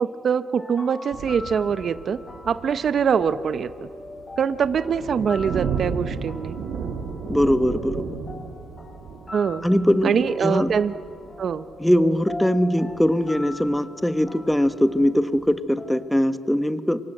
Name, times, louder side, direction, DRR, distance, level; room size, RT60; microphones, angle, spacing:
voice 1, 0.0-2.2 2.5-3.7 4.4-6.5 9.3-9.6 10.0-10.9 11.4-11.6, right 7 dB, 55° right, 12 dB, 0.8 m, -23 dB
sound 1, 0.6-16.0, left 2 dB, 30° left, 6.5 m, -42 dB
sound 2, 1.1-13.8 14.5-15.6, right 6 dB, 75° right, 2.5 m, -35 dB
voice 2, 7.3-8.2 9.6-10.7 11.8-17.0, equal, 5° left, 10 dB, 1.2 m, -21 dB
27.0 x 25.0 x 7.8 m, 2.4 s
cardioid pair, 90°, 0 cm